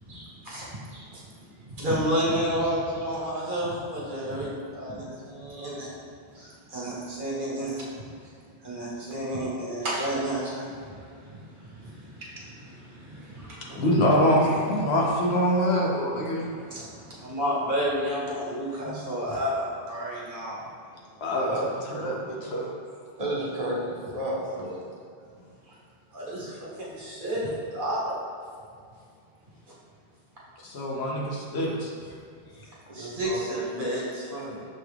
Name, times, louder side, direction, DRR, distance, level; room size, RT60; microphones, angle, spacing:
voice 1, 0.0-5.9 6.3-7.8 8.2-8.3 8.6-13.9 14.4-15.1 16.4-20.7 25.7-25.8 26.1-28.1 32.9-34.2, equal, 55° right, -6 dB, 1.2 m, -31 dB
voice 2, 13.7-16.5 18.8-19.0 21.2-21.5 21.9-22.7 30.6-31.9, equal, 85° left, -3 dB, 1.1 m, -24 dB
voice 3, 23.2-24.8 32.9-33.4 34.3-34.7, right 1 dB, 40° right, -6 dB, 0.9 m, -32 dB
6.2 x 2.3 x 3.3 m, 2.3 s
omnidirectional pair, 1.0 m